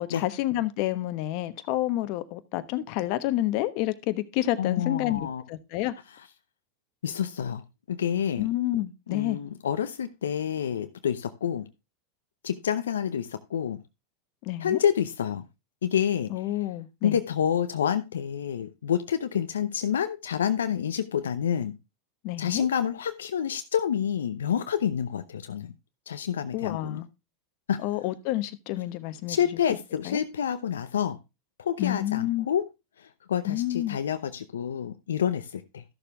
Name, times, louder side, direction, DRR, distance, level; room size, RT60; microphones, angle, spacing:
voice 1, 0.0-5.9 8.4-9.4 14.4-14.8 16.3-17.1 22.2-22.7 26.5-27.1 27.8-29.4 30.0-30.2 31.8-32.5 33.4-34.0, left 15 dB, 55° left, 1.1 m, -29 dB
voice 2, 4.6-5.4 7.0-7.6 7.9-8.5 9.1-11.7 12.4-13.8 14.6-15.5 15.8-16.7 17.0-21.8 22.4-25.7 26.1-27.0 27.7-27.8 29.3-31.2 31.6-32.6 33.0-35.8, left 8 dB, 90° left, 0.7 m, -28 dB
13.0 x 6.9 x 3.4 m
hypercardioid pair, 105°, 0 cm